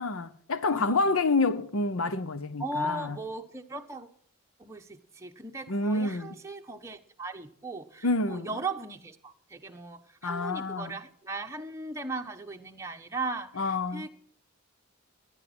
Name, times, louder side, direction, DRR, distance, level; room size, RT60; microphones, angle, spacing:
voice 1, 0.0-3.2 5.7-6.3 8.0-8.5 10.2-11.0 13.6-14.1, left 3 dB, 80° left, 0.9 m, -28 dB
voice 2, 0.7-1.0 2.6-4.1 4.6-14.1, right 2 dB, 15° right, 1.1 m, -37 dB
18.5 x 11.5 x 4.3 m
head